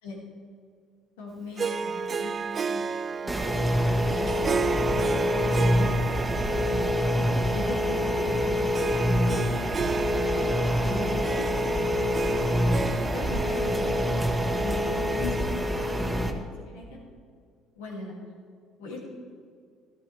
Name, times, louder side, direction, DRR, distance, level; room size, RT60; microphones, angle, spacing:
voice 1, 1.2-2.8 3.2-5.0 5.3-5.9 6.2-7.0 7.5-8.7 9.0-10.2 10.5-11.9 13.1-16.3 16.7-17.0 17.7-18.1 18.8-19.0, left 3 dB, 85° left, -2 dB, 2.5 m, -40 dB
Harp, 1.6-15.2, right 5 dB, 40° right, 0.5 m, -34 dB
sound 1, 3.3-16.3, equal, 15° right, 1.5 m, -26 dB
13.0 x 12.5 x 3.4 m, 2.1 s
hypercardioid pair, 60°, 0 cm